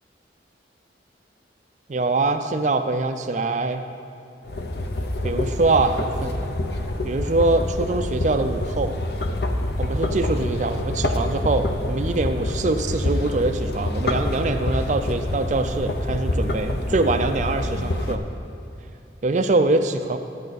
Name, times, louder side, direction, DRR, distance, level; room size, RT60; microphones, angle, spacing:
voice 1, 1.9-3.8 5.2-6.4 7.0-9.0 9.8-18.3 19.2-20.2, right 2 dB, 40° right, 7 dB, 0.4 m, -23 dB
sound 1, 4.4-18.2, left 1 dB, 60° left, 0.7 m, -26 dB
13.0 x 9.0 x 4.1 m, 2.9 s
head